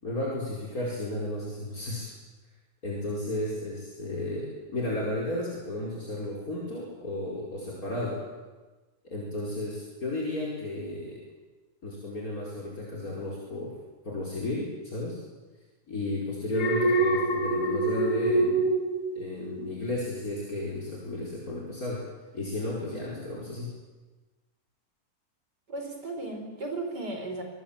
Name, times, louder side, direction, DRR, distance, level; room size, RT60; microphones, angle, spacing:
voice 1, 0.0-2.1 2.8-8.2 9.1-11.2 11.8-13.7 14.0-15.2 15.9-18.7 19.2-22.0 22.3-23.7, left 1 dB, 60° left, -4 dB, 5.7 m, -33 dB
Alarm, 16.5-19.8 20.2-20.5, right 2 dB, 75° left, 3.4 m, -26 dB
voice 2, 25.7-27.4, right 2 dB, 90° right, 3 dB, 5.2 m, -35 dB
27.0 x 21.0 x 8.9 m, 1.2 s
omnidirectional pair, 1.8 m